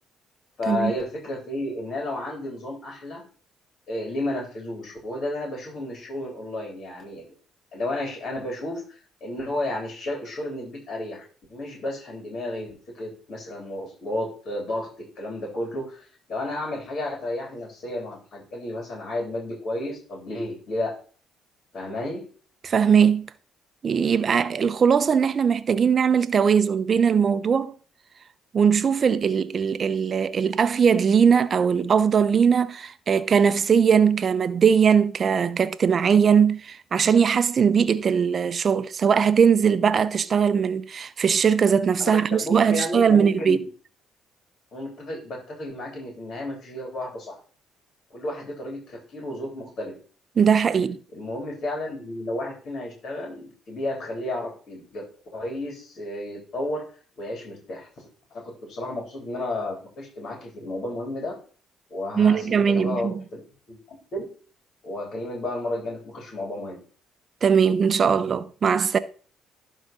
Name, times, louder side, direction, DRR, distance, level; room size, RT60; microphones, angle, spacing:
voice 1, 0.6-3.2 3.9-7.3 7.7-11.2 11.5-20.9 21.7-22.2 42.0-43.7 44.7-47.4 48.1-50.0 51.1-55.0 55.3-56.8 57.2-61.3 61.9-63.4 63.7-64.3 64.8-66.8, left 1 dB, 55° left, 3.7 m, -32 dB
voice 2, 22.6-23.3 23.8-27.7 28.5-43.6 50.4-51.0 62.2-63.1 67.4-69.0, right 7 dB, 50° right, 0.7 m, -20 dB
11.5 x 4.1 x 5.3 m
supercardioid pair, 65°, 0 cm